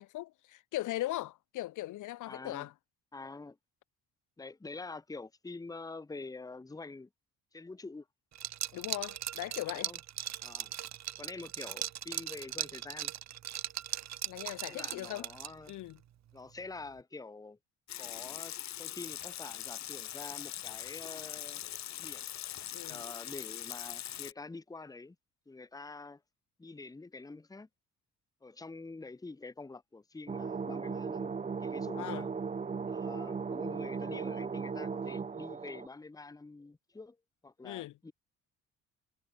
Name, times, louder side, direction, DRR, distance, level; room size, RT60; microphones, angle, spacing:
voice 1, 0.0-2.7 8.7-9.9 14.3-15.3 15.7-16.0 22.7-23.0 31.9-32.3 37.6-37.9, left 16 dB, 85° left, 1.3 m, -39 dB
voice 2, 2.3-2.7 3.1-3.6 4.4-7.1 7.5-8.1 9.7-10.0 10.4-10.7 11.2-13.1 14.7-15.8 16.3-17.6 18.0-21.6 22.0-22.3 22.9-25.2 25.5-26.2 26.6-27.7 28.4-31.4 31.6-32.3 32.9-37.2 37.4-38.1, left 3 dB, 10° left, 0.9 m, -46 dB
Liquid, 8.4-15.8, right 11 dB, 60° right, 1.4 m, -39 dB
Water tap faucet / Sink (filling or washing) / Liquid, 17.9-24.3, left 12 dB, 65° left, 1.1 m, -42 dB
sound 1, 30.3-35.9, right 5 dB, 25° right, 0.7 m, -37 dB
cardioid pair, 90°, 30 cm